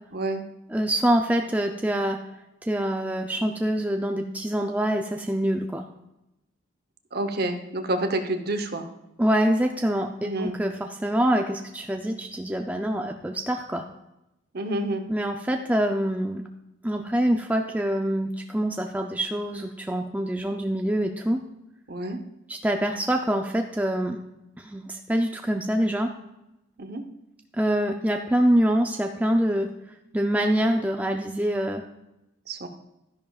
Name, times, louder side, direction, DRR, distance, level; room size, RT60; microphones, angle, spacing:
voice 1, 0.1-0.4 7.1-8.9 10.2-10.6 14.5-15.0 21.9-22.2 26.8-27.0 32.5-32.7, right 1 dB, 50° right, 7 dB, 0.9 m, -28 dB
voice 2, 0.7-2.2 2.7-5.8 9.2-13.8 15.1-16.4 16.8-21.4 22.5-24.2 24.6-26.1 27.6-29.7 30.1-31.8, right 1 dB, 10° right, 3 dB, 0.4 m, -25 dB
12.5 x 10.5 x 2.4 m, 0.91 s
head